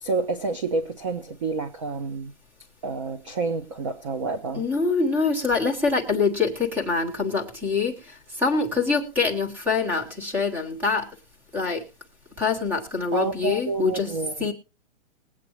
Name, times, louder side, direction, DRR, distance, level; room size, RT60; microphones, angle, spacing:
voice 1, 0.0-2.3 2.8-4.6 13.1-14.5, right 4 dB, 25° right, 0.6 m, -29 dB
voice 2, 4.6-11.1 11.5-11.8 12.4-14.1 14.4-14.5, left 4 dB, 5° right, 1.1 m, -25 dB
20.5 x 8.5 x 3.0 m
hypercardioid pair, 165°, 38 cm